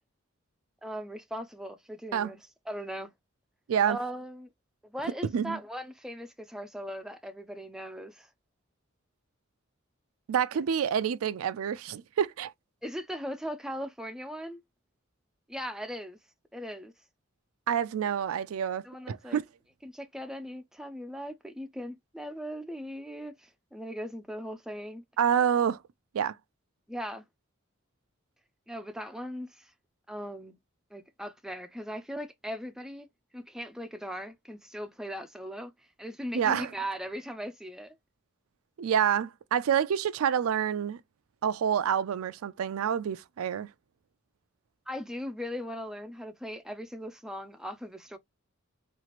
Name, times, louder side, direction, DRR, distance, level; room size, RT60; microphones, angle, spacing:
voice 1, 0.8-3.1 3.9-4.5 4.8-8.3 12.8-14.6 15.5-16.2 16.5-16.9 18.8-19.4 19.8-25.0 26.9-27.3 28.7-29.7 30.1-30.5 30.9-33.1 33.3-38.0 44.9-48.2, equal, 5° right, 0.3 m, -39 dB
voice 2, 10.3-12.5 17.7-19.4 25.2-25.8 26.1-26.4 36.3-36.7 38.8-41.0 41.4-43.7, right 8 dB, 90° right, 0.4 m, -27 dB
3.0 x 2.4 x 2.9 m
head